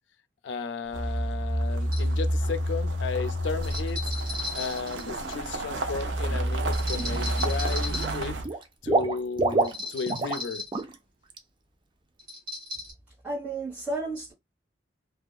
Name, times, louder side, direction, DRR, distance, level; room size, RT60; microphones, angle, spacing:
voice 1, 0.4-4.0 4.5-8.4 8.8-10.7, left 4 dB, 80° left, 0.4 m, -34 dB
sound 1, 0.9-1.0 1.8-2.1 3.6-5.5 6.7-8.3 9.6-10.8 12.2-12.9, left 2 dB, 50° right, 1.1 m, -37 dB
sound 2, 0.9-8.4, right 1 dB, 80° right, 0.6 m, -29 dB
Water / Liquid, 6.3-6.6 6.9-7.6 7.9-10.5 10.7-10.9 11.3-11.4, right 3 dB, 25° right, 0.4 m, -28 dB
voice 2, 13.2-14.3, right 2 dB, 5° right, 1.2 m, -32 dB
2.6 x 2.3 x 2.2 m
head